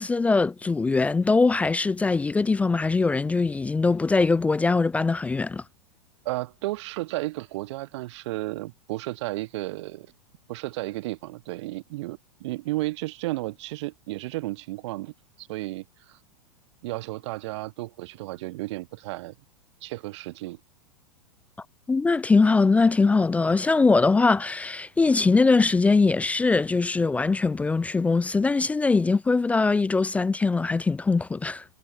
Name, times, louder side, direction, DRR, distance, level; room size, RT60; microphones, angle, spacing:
voice 1, 0.0-5.6 21.9-31.6, left 3 dB, 5° left, 0.4 m, -22 dB
voice 2, 6.2-10.1 10.5-16.2 16.8-19.3 19.8-20.6, right 19 dB, 50° right, 1.3 m, -33 dB
figure-of-eight pair, 95°, 19 cm